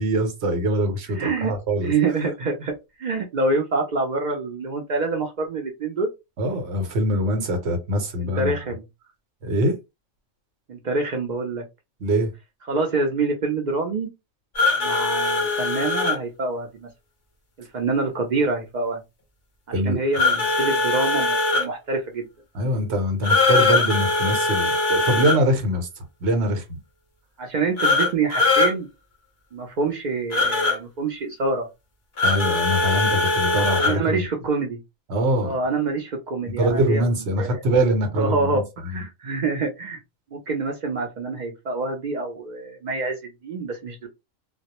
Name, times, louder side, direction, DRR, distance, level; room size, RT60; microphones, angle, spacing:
voice 1, 0.0-1.9 6.4-8.6 9.4-9.8 12.0-12.3 19.7-20.0 22.5-25.9 26.2-26.8 32.2-34.2 35.1-35.6 36.5-39.0, right 1 dB, 60° right, 0.9 m, -23 dB
voice 2, 1.1-1.5 1.8-2.7 3.0-6.1 8.2-8.8 10.7-11.6 12.7-14.1 14.8-16.9 17.6-19.0 19.8-22.3 27.4-28.9 29.5-31.7 33.8-34.8 35.4-37.0 37.3-37.6 38.2-40.0 40.3-44.1, right 3 dB, 80° right, 0.4 m, -26 dB
sound 1, 14.5-16.2 20.1-21.6 23.2-25.4 27.8-28.7 30.3-30.8 32.2-34.0, left 3 dB, 45° left, 0.8 m, -21 dB
2.2 x 2.0 x 2.8 m
omnidirectional pair, 1.4 m